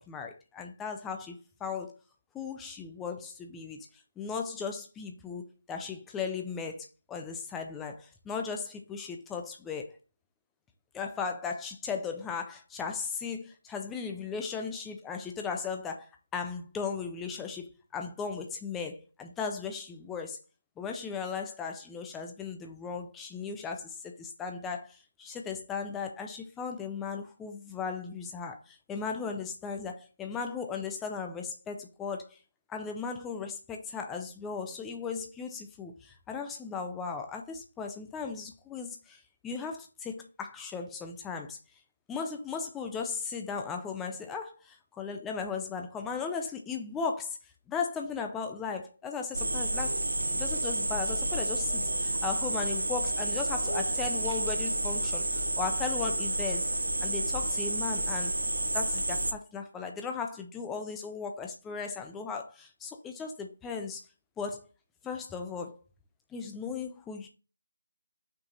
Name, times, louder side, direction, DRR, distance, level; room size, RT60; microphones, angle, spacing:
voice 1, 0.0-2.0 2.3-3.9 4.2-10.0 10.9-17.7 17.9-20.4 20.8-32.4 32.7-41.6 42.1-47.4 47.7-50.0 50.3-56.7 57.0-64.0 64.4-64.7 65.0-65.8 66.3-67.3, left 5 dB, 5° left, 0.4 m, -37 dB
sound 1, 49.3-59.3, right 2 dB, 75° right, 1.3 m, -30 dB
5.7 x 4.5 x 3.9 m
figure-of-eight pair, 180°, 0 cm